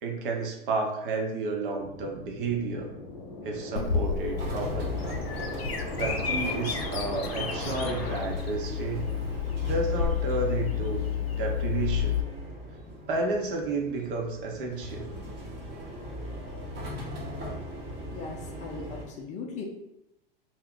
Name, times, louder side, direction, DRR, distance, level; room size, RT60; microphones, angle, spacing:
voice 1, 0.0-2.9 3.4-5.1 6.0-9.1 9.6-11.0 11.4-12.1 13.1-15.1, right 3 dB, 60° right, 1 dB, 0.8 m, -31 dB
sound 1, 1.8-8.2, left 2 dB, 50° left, 0.7 m, -40 dB
Bird vocalization bird call bird song, 3.8-12.2, left 7 dB, 85° left, 0.5 m, -31 dB
sound 2, 4.4-19.1, equal, 35° right, 0.9 m, -39 dB
voice 2, 18.1-19.6, left 5 dB, 25° left, 1 dB, 0.4 m, -39 dB
2.4 x 2.1 x 3.7 m, 0.87 s
hypercardioid pair, 100°, 30 cm